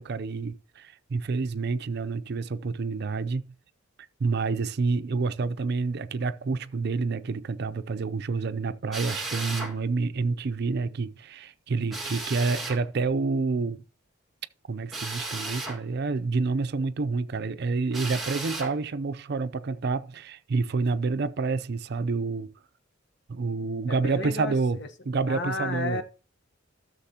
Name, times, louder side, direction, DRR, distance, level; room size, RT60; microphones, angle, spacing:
voice 1, 0.0-3.5 4.2-13.8 14.7-22.5 23.3-24.8 25.1-26.0, right 4 dB, 55° right, 0.5 m, -28 dB
Drill, 8.9-9.7 11.9-12.8 14.9-15.8 17.9-18.7, right 2 dB, ahead, 1.8 m, -34 dB
voice 2, 23.9-24.9 25.3-26.0, left 3 dB, 55° left, 1.1 m, -32 dB
13.5 x 6.7 x 2.8 m
head